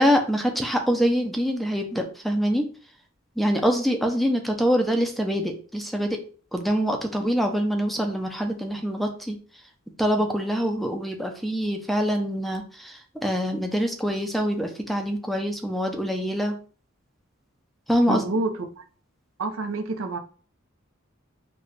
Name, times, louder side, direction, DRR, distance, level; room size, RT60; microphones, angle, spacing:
voice 1, 0.0-2.7 3.4-6.2 6.5-9.4 10.0-16.6 17.9-18.2, equal, ahead, 0.4 m, -24 dB
voice 2, 18.1-18.8 19.4-20.2, right 3 dB, 75° right, 0.6 m, -28 dB
4.0 x 2.2 x 3.2 m
head